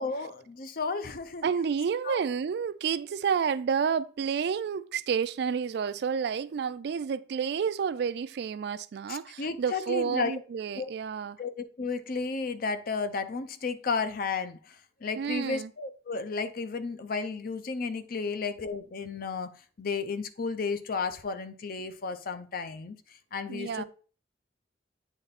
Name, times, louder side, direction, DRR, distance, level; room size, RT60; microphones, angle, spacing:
voice 1, 0.0-1.5 2.0-2.2 9.1-10.4 10.7-10.9 11.4-23.0 23.3-23.8, left 4 dB, 55° left, 0.6 m, -33 dB
voice 2, 1.4-11.4 15.2-15.7 23.5-23.8, right 6 dB, 65° right, 0.3 m, -30 dB
8.2 x 3.3 x 4.1 m
head